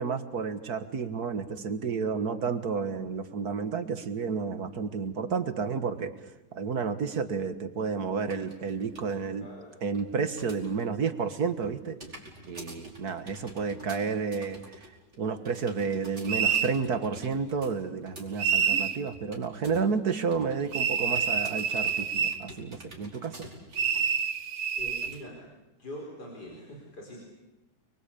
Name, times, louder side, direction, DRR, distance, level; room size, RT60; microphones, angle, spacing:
voice 1, 0.0-6.1 6.5-9.5 9.8-12.0 12.5-14.9 15.2-23.5, right 5 dB, 65° right, 10 dB, 2.0 m, -31 dB
sound 1, 8.3-9.2 9.5-10.9 11.2-19.9 20.2-20.7 21.2-24.1 24.5-24.6 25.0-25.2, right 1 dB, 40° right, 5.3 m, -48 dB
voice 2, 9.4-9.7 24.1-24.5 24.8-25.5 25.8-27.2, left 1 dB, 75° left, -1 dB, 5.5 m, -44 dB
sound 2, 16.3-16.7 18.4-19.0 20.7-22.4 23.7-25.1, right 7 dB, 85° right, 1.9 m, -27 dB
29.5 x 23.0 x 8.6 m, 1.0 s
omnidirectional pair, 1.8 m